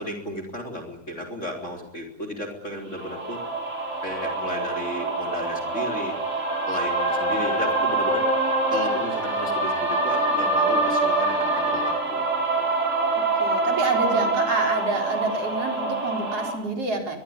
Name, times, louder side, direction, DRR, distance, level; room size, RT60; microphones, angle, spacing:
voice 1, 0.0-3.4 4.0-6.2 6.7-8.3 8.7-12.2 12.6-12.7, equal, 20° left, 3 dB, 4.1 m, -34 dB
sound 1, 2.9-16.5, right 2 dB, 20° right, 7.4 m, -25 dB
voice 2, 13.4-17.2, right 2 dB, 50° right, 3 dB, 5.3 m, -28 dB
23.0 x 22.5 x 9.7 m, 0.73 s
omnidirectional pair, 3.6 m